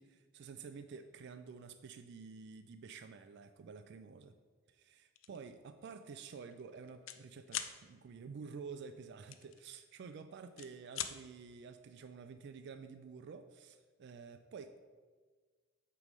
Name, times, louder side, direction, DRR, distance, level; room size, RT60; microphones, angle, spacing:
voice 1, 0.0-4.3 4.7-14.8, right 5 dB, 55° right, 9 dB, 0.3 m, -50 dB
sound 1, 5.2-5.4 5.8-6.0 6.3-7.2 7.5-7.7 9.3-10.1 10.4-11.1, left 10 dB, 70° left, 0.5 m, -42 dB
8.0 x 3.4 x 5.2 m, 1.5 s
head